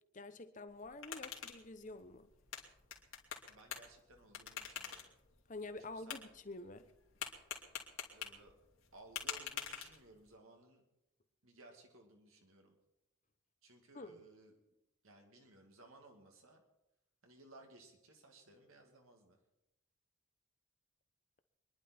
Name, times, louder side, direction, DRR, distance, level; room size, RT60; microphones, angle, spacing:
voice 1, 0.1-2.3 5.5-6.9 13.9-14.2, left 2 dB, 35° left, 0.9 m, -48 dB
sound 1, 0.7-10.3, left 8 dB, 70° left, 2.7 m, -48 dB
voice 2, 3.5-5.1 5.8-6.2 8.1-8.5 8.9-10.8 11.4-12.8 13.6-14.5 15.0-16.6 17.2-19.4, right 2 dB, 75° right, 2.3 m, -60 dB
24.5 x 11.0 x 4.4 m
head